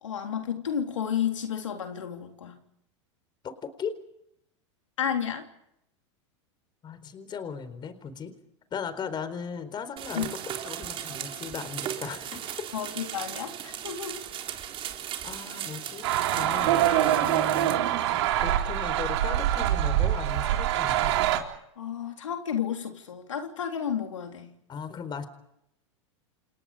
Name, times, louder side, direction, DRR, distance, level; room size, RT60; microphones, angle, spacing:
voice 1, 0.0-2.6 5.0-5.5 10.2-10.3 12.7-14.3 21.8-24.5, left 8 dB, 90° left, 3.5 m, -32 dB
voice 2, 3.4-4.0 6.8-8.3 8.7-12.4 15.2-16.9 17.2-17.8 18.4-21.1 24.7-25.2, left 6 dB, 30° left, 4.3 m, -37 dB
sound 1, 10.0-17.7, right 10 dB, 35° right, 3.8 m, -37 dB
sound 2, 16.0-21.4, right 12 dB, 70° right, 4.0 m, -24 dB
29.5 x 29.0 x 5.1 m
hypercardioid pair, 105°, 15 cm